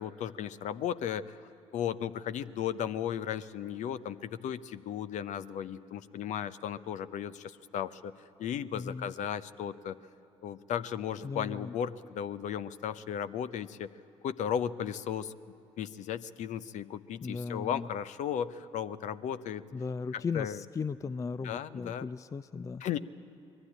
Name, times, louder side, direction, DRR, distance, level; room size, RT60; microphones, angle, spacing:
voice 1, 0.0-8.1 8.4-10.0 10.4-13.9 14.2-15.3 15.8-19.6 20.1-20.6 21.4-22.1 22.8-23.0, left 9 dB, 55° left, 14 dB, 0.7 m, -35 dB
voice 2, 8.7-9.1 11.2-11.7 17.2-17.9 19.7-22.8, left 5 dB, 20° left, 18 dB, 0.4 m, -37 dB
21.0 x 14.5 x 9.9 m, 2.9 s
figure-of-eight pair, 50°, 15 cm